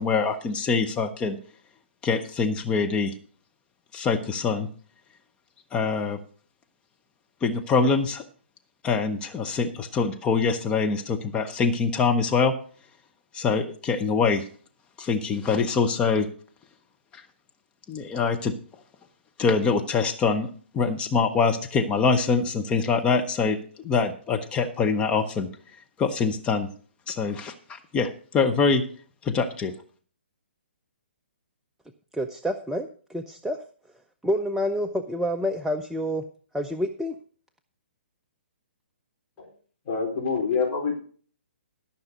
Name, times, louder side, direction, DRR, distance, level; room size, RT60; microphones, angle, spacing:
voice 1, 0.0-1.4 2.0-3.1 3.9-4.7 5.7-6.2 7.4-8.2 8.8-12.5 13.3-14.4 15.0-16.3 17.1-17.2 17.9-18.5 19.4-20.5 20.7-23.6 23.8-25.5 26.0-26.7 27.1-28.8 29.2-29.7, left 5 dB, 15° left, 5 dB, 0.8 m, -24 dB
voice 2, 32.1-33.6 34.2-36.2 36.5-37.2, equal, 5° right, 5 dB, 0.5 m, -28 dB
voice 3, 39.9-40.9, left 5 dB, 35° left, -1 dB, 4.2 m, -26 dB
13.0 x 5.8 x 6.5 m, 0.43 s
figure-of-eight pair, 130°, 6 cm